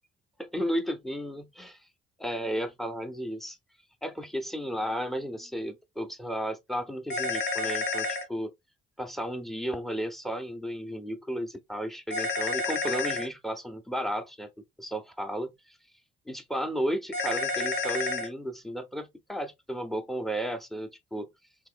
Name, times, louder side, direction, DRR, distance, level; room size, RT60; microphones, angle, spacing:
voice 1, 0.4-1.9 2.2-3.6 4.0-8.5 9.0-15.8 16.3-21.3, equal, ahead, 0.7 m, -34 dB
sound 1, 7.1-8.2 12.1-13.3 17.1-18.3, left 3 dB, 60° left, 1.3 m, -29 dB
3.5 x 2.9 x 2.4 m
cardioid pair, 90°, 20 cm